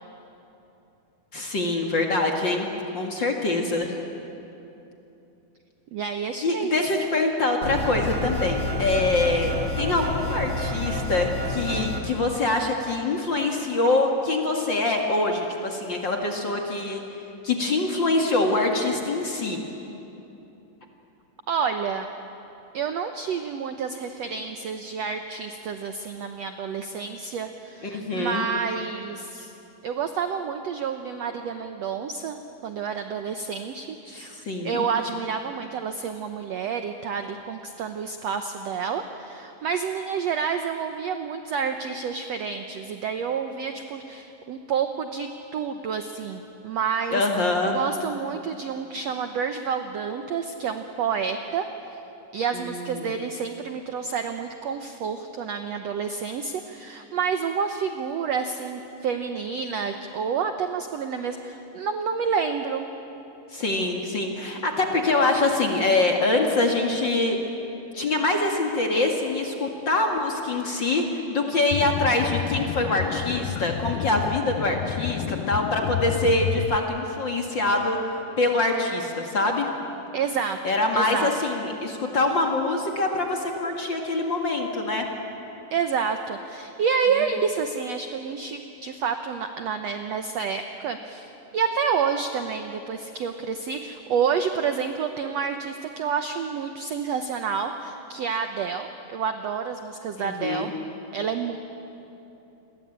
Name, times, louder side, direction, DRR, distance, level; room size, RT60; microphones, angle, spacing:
voice 1, 1.3-2.7 2.9-3.9 6.4-17.0 17.4-19.6 27.8-28.5 34.1-34.9 47.1-47.8 52.5-53.1 63.5-67.4 67.9-78.0 78.4-79.7 80.6-85.1 100.2-100.7, left 2 dB, 40° left, 2 dB, 2.0 m, -24 dB
voice 2, 5.9-6.8 21.5-22.1 22.7-29.5 29.8-34.4 34.6-47.3 47.6-52.0 52.3-62.9 80.1-80.6 80.9-81.3 85.7-100.7 101.1-101.6, right 6 dB, 85° right, 7 dB, 1.4 m, -29 dB
sound 1, 7.6-12.0, left 1 dB, 25° right, 2.6 m, -29 dB
sound 2, 71.7-76.8, left 12 dB, 80° left, 2.5 m, -30 dB
29.0 x 22.0 x 8.8 m, 2.9 s
omnidirectional pair, 4.4 m